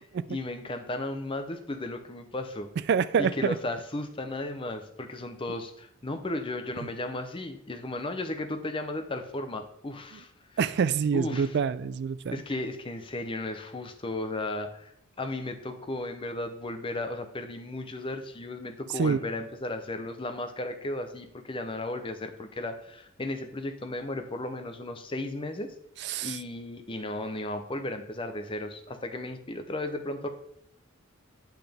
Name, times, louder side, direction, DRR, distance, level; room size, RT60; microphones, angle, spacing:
voice 1, 0.3-2.7 3.2-10.3 11.1-11.5 12.3-25.7 26.2-30.3, left 2 dB, 25° left, 7 dB, 0.7 m, -35 dB
voice 2, 2.9-3.6 10.6-12.4 19.0-19.2 26.0-26.4, right 6 dB, 50° right, 16 dB, 0.3 m, -26 dB
8.8 x 5.7 x 3.5 m, 0.73 s
head